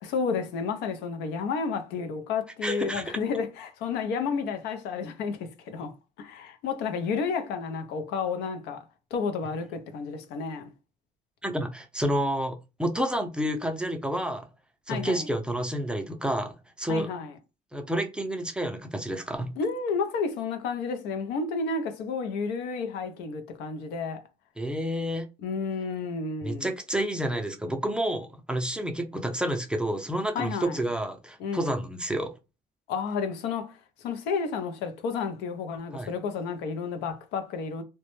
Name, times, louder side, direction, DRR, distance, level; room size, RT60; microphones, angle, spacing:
voice 1, 0.0-8.9 9.1-10.7 14.9-15.3 16.9-17.3 19.6-24.2 25.4-26.7 30.3-30.8 31.4-31.8 32.9-37.8, left 5 dB, 90° left, 0.5 m, -31 dB
voice 2, 2.6-3.0 11.4-14.5 14.9-17.1 17.7-19.5 24.6-25.3 26.4-32.3 35.9-36.1, right 1 dB, 5° right, 0.4 m, -29 dB
2.1 x 2.0 x 3.0 m
cardioid pair, 110°, 17 cm